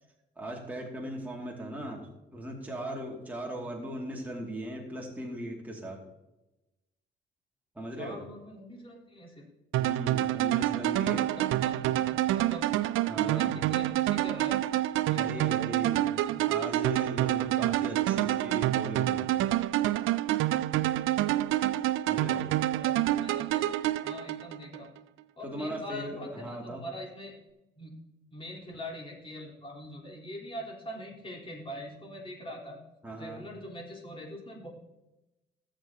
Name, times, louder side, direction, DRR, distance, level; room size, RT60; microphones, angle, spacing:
voice 1, 0.4-6.0 7.8-8.2 9.7-11.3 13.1-13.6 15.0-16.1 16.5-19.3 22.1-22.5 25.4-26.8 33.0-33.4, right 1 dB, 10° right, -2 dB, 2.4 m, -38 dB
voice 2, 8.0-9.5 10.2-12.7 13.1-14.6 15.1-15.6 16.3-16.6 22.3-23.7 24.0-24.9 25.4-27.3 27.8-27.9 28.3-32.8 33.2-34.7, left 1 dB, 25° left, -3 dB, 4.0 m, -43 dB
sound 1, 9.7-24.8, right 14 dB, 85° right, 0.4 m, -27 dB
17.5 x 7.5 x 2.9 m, 0.99 s
cardioid pair, 90°, 20 cm